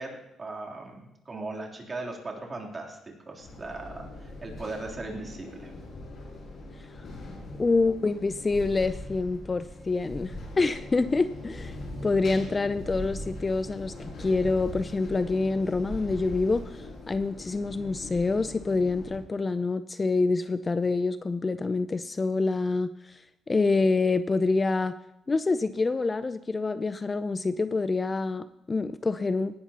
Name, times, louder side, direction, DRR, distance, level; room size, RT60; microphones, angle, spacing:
voice 1, 0.0-3.0 3.2-5.7, right 2 dB, 30° right, -1 dB, 3.2 m, -38 dB
sound 1, 3.4-19.2, left 1 dB, 60° left, 5.1 m, -41 dB
voice 2, 7.6-11.8 12.0-25.0 25.3-29.6, left 3 dB, 25° left, 13 dB, 0.4 m, -27 dB
18.0 x 12.0 x 2.9 m, 0.88 s
cardioid pair, 90°, 0 cm